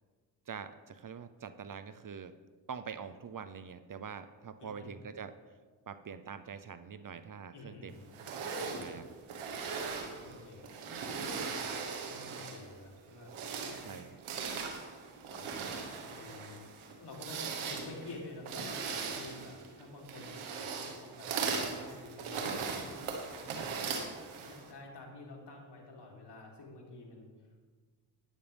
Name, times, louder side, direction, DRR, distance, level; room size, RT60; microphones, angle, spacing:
voice 1, 0.5-2.3 2.7-5.4 5.9-8.0 8.8-9.1 13.8-14.2, right 6 dB, 45° right, 12 dB, 0.7 m, -44 dB
voice 2, 4.6-5.0 7.5-8.1 10.2-11.7 12.1-13.3 13.6-13.8 15.3-23.4 24.1-27.3, left 2 dB, 55° left, -1 dB, 3.2 m, -50 dB
sound 1, 8.1-12.7 13.2-24.7, right 5 dB, 90° right, 1.4 m, -39 dB
12.5 x 10.5 x 3.5 m, 1.4 s
supercardioid pair, 55°, 48 cm